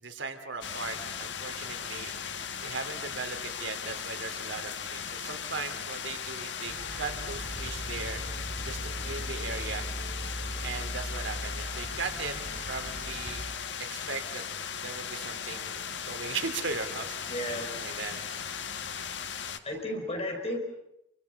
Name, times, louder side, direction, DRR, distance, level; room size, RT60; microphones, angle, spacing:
voice 1, 0.0-2.1 2.6-8.2 8.6-9.9 10.6-12.4 12.7-13.4 13.9-14.4 14.8-18.2, right 4 dB, 85° right, 6 dB, 3.0 m, -38 dB
sound 1, 0.6-19.6, left 7 dB, 70° left, 1.5 m, -37 dB
sound 2, 6.7-13.5, equal, 60° right, 6.7 m, -39 dB
voice 2, 17.3-17.9 19.6-20.6, left 1 dB, 35° left, 3 dB, 5.4 m, -34 dB
27.5 x 25.0 x 7.1 m, 0.81 s
head